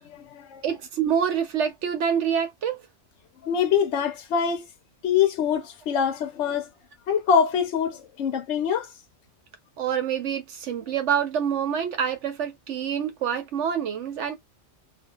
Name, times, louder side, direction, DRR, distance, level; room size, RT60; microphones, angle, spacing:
voice 1, 0.0-0.6 3.4-4.6 5.0-6.7 7.1-8.9, left 7 dB, 70° left, 0.9 m, -24 dB
voice 2, 0.6-2.8 9.8-14.4, right 8 dB, 70° right, 1.0 m, -26 dB
2.6 x 2.3 x 2.3 m
omnidirectional pair, 1.3 m